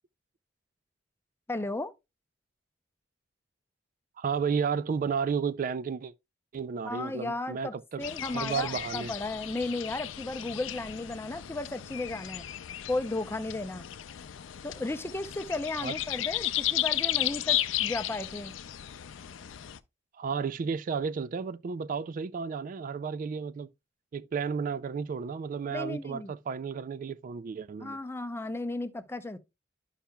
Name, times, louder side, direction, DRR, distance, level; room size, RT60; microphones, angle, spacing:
voice 1, 1.5-1.9 6.8-12.5 12.9-13.9 14.6-18.5 25.7-26.4 27.8-29.4, left 2 dB, 15° left, 0.5 m, -34 dB
voice 2, 4.2-6.1 6.5-9.1 15.8-16.0 20.2-23.7 24.1-28.0, right 6 dB, 45° right, 0.3 m, -32 dB
sound 1, 8.0-19.8, left 13 dB, 80° left, 0.5 m, -34 dB
11.5 x 5.7 x 2.3 m
head